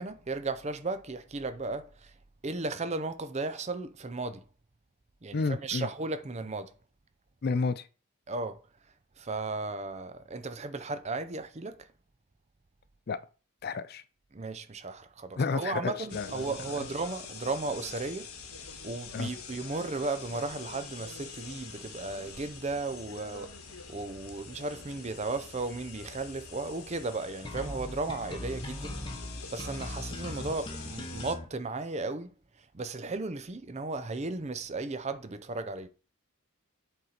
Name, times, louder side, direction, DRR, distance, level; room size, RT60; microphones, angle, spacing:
voice 1, 0.0-2.1 2.4-4.4 5.2-6.7 8.3-8.6 9.2-11.9 14.3-18.3 18.8-23.5 23.9-29.0 29.5-32.3 32.7-35.9, right 3 dB, 30° right, 0.6 m, -35 dB
voice 2, 5.3-5.9 7.4-7.9 13.1-13.2 13.6-14.0 15.4-16.8 19.1-19.3, left 4 dB, 45° left, 0.4 m, -31 dB
sound 1, 16.1-31.4, left 5 dB, 80° left, 1.5 m, -45 dB
sound 2, 27.4-31.4, left 1 dB, 20° left, 1.0 m, -39 dB
7.9 x 4.0 x 4.3 m
head